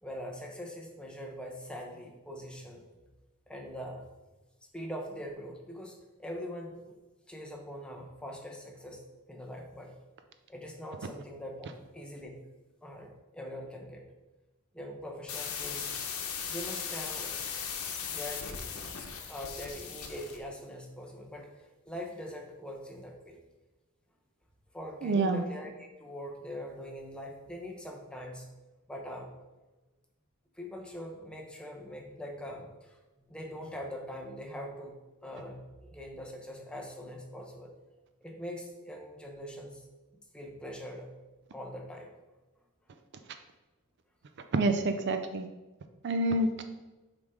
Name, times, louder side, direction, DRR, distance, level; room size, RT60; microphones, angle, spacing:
voice 1, 0.0-2.9 3.5-4.0 4.7-7.0 7.3-9.0 9.3-9.9 10.5-12.4 12.8-14.0 14.7-15.9 16.5-17.3 18.1-18.9 19.3-23.4 24.7-28.5 28.9-29.3 30.6-35.0 35.2-37.7 38.2-39.8 40.3-41.1 41.5-42.1, equal, 5° left, 0 dB, 0.9 m, -42 dB
sound 1, 15.3-20.4, left 7 dB, 75° left, 0.9 m, -38 dB
voice 2, 25.0-25.4 44.5-45.5 46.0-46.6, right 2 dB, 50° right, 7 dB, 0.4 m, -27 dB
7.1 x 4.9 x 3.7 m, 1.1 s
head